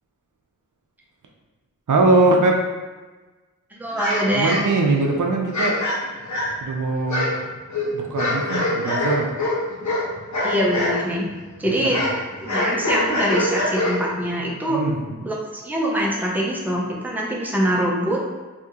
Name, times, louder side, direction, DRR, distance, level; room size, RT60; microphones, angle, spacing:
voice 1, 1.9-2.6 4.3-5.8 6.6-7.3 7.9-9.3 11.7-11.9 14.7-15.2, right 2 dB, 75° right, 1 dB, 0.5 m, -21 dB
voice 2, 3.7-4.6 10.4-11.3 11.6-12.0 12.4-14.8 15.2-18.2, equal, 5° right, -3 dB, 0.7 m, -23 dB
sound 1, 3.9-5.0 5.5-6.7 7.1-11.0 11.2-14.2, left 1 dB, 65° left, 1.1 m, -24 dB
2.8 x 2.8 x 3.6 m, 1.3 s
wide cardioid pair, 65°, 31 cm